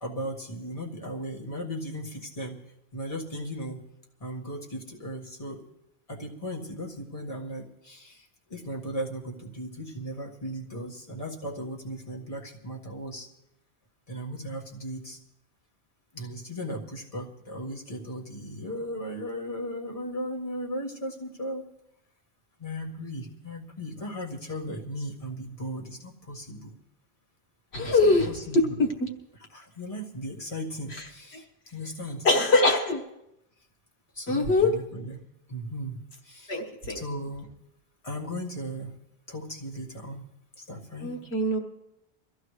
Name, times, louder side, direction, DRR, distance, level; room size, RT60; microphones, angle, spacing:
voice 1, 0.0-2.6 2.9-3.8 4.2-5.6 6.1-13.3 14.1-15.2 16.1-21.6 22.6-26.7 27.9-28.9 29.4-31.5 31.7-32.3 34.1-35.2 35.5-36.6 36.9-37.5 38.0-39.0 39.3-40.3 40.6-41.1, equal, 35° left, -3 dB, 1.9 m, -37 dB
voice 2, 27.7-28.3 29.0-29.1 32.2-33.0 34.3-34.7 36.5-37.0 41.0-41.6, left 2 dB, 85° left, 3 dB, 1.7 m, -22 dB
23.0 x 14.5 x 3.3 m, 0.87 s
omnidirectional pair, 1.1 m